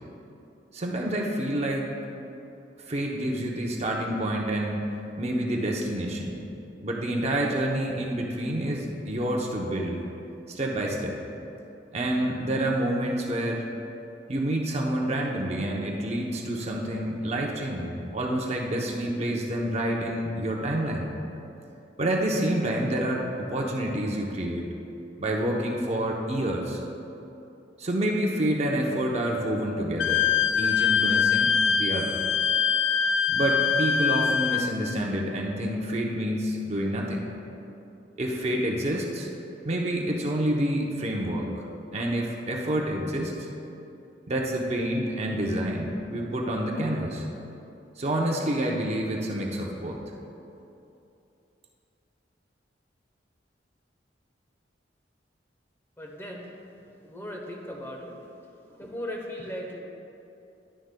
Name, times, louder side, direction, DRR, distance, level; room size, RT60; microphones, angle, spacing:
voice 1, 0.7-1.9 2.9-4.9 5.2-6.4 6.8-10.0 10.5-11.2 11.9-13.7 14.3-21.1 22.0-24.7 25.2-26.8 27.8-30.3 30.6-32.2 33.3-37.3 38.2-39.3 39.6-41.6 41.9-43.5 44.3-47.2 48.0-50.0, right 1 dB, 35° right, -1 dB, 0.7 m, -28 dB
Wind instrument woodwind instrument, 30.0-34.7, left 7 dB, 80° left, 0.3 m, -23 dB
voice 2, 56.0-56.5 57.0-58.3 58.7-59.8, equal, 15° left, -1 dB, 0.9 m, -37 dB
11.5 x 9.7 x 2.2 m, 2.8 s
head